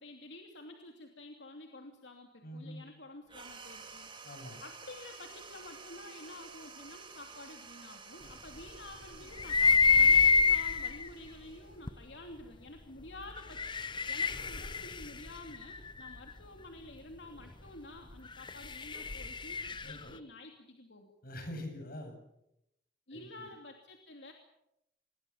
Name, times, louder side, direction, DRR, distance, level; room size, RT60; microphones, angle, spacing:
voice 1, 0.0-4.1 4.6-13.6 14.1-19.6 19.8-21.1 23.1-24.3, left 2 dB, 75° left, 3 dB, 2.8 m, -50 dB
voice 2, 2.4-2.9 4.2-4.6 19.8-20.1 21.2-22.2 23.1-23.5, left 1 dB, 55° left, 5 dB, 7.5 m, -44 dB
sound 1, 3.3-12.2, right 5 dB, 30° right, 3.6 m, -52 dB
sound 2, 9.4-11.1 11.9-12.0 13.3-16.2 18.3-20.0, left 5 dB, 25° left, 0.9 m, -27 dB
27.0 x 21.5 x 7.3 m, 0.83 s
head